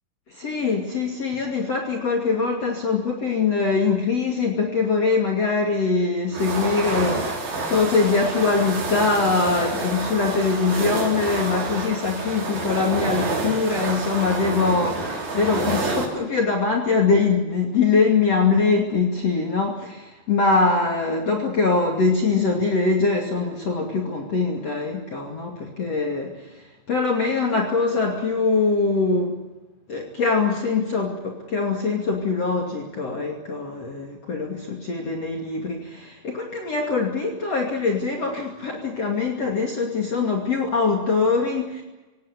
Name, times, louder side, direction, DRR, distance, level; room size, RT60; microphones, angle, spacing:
voice 1, 0.3-26.4 26.9-29.4 29.9-41.8, left 4 dB, 40° left, 2 dB, 3.3 m, -23 dB
sound 1, 6.3-16.0, right 3 dB, 45° right, 5.5 m, -28 dB
26.0 x 18.0 x 9.8 m, 1.1 s
omnidirectional pair, 4.7 m